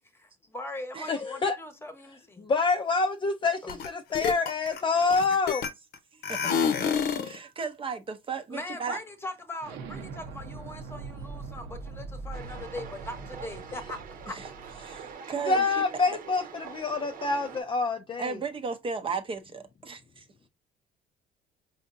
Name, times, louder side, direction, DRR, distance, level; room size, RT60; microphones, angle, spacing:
voice 1, 0.1-2.5 3.6-3.8 8.5-14.0 14.2-14.3 14.6-14.7, left 2 dB, 15° left, 1.0 m, -40 dB
voice 2, 1.1-1.6 2.4-5.6 15.4-18.4, left 4 dB, 30° left, 0.4 m, -27 dB
sound 1, 3.7-3.9 4.1-5.9 6.2-7.4, left 7 dB, 70° left, 0.8 m, -28 dB
voice 3, 7.2-9.0 14.3-14.5 14.8-15.6 18.2-20.2, right 5 dB, 30° right, 0.6 m, -35 dB
Explosion, 9.6-15.1, right 4 dB, 80° right, 0.8 m, -42 dB
sound 2, 12.3-17.6, right 6 dB, 60° right, 1.0 m, -44 dB
5.0 x 2.6 x 2.5 m
cardioid pair, 110°, 17 cm